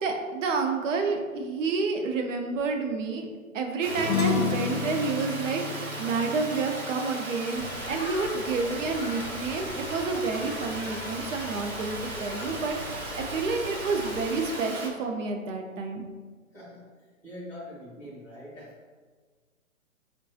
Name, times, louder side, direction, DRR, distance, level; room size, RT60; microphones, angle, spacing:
voice 1, 0.0-3.3 3.5-16.0, right 4 dB, 65° right, 4 dB, 0.6 m, -29 dB
Water, 3.8-14.9, right 2 dB, 85° right, 1.0 m, -37 dB
sound 1, 3.9-8.6, left 7 dB, 85° left, 0.6 m, -32 dB
sound 2, 7.5-14.5, left 3 dB, 45° left, 0.6 m, -41 dB
voice 2, 16.5-16.9 17.2-18.7, left 1 dB, 5° left, -11 dB, 0.6 m, -43 dB
4.6 x 2.2 x 2.6 m, 1.5 s
figure-of-eight pair, 135°, 42 cm